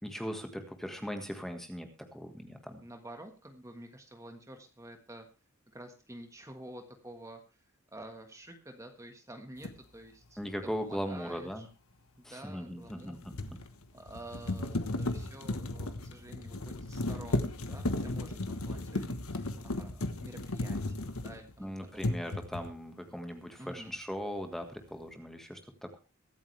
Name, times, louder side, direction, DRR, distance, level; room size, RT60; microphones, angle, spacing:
voice 1, 0.0-2.8 10.4-11.7 12.2-13.6 21.6-26.0, equal, ahead, 6 dB, 1.6 m, -39 dB
voice 2, 2.8-5.2 5.7-7.4 7.9-11.7 12.2-13.2 13.9-22.3 23.6-23.9, right 1 dB, 15° right, 5 dB, 1.5 m, -49 dB
sound 1, 9.6-9.8 12.8-21.6 22.0-22.8, left 2 dB, 85° left, 1.3 m, -35 dB
23.0 x 8.8 x 3.3 m, 0.30 s
head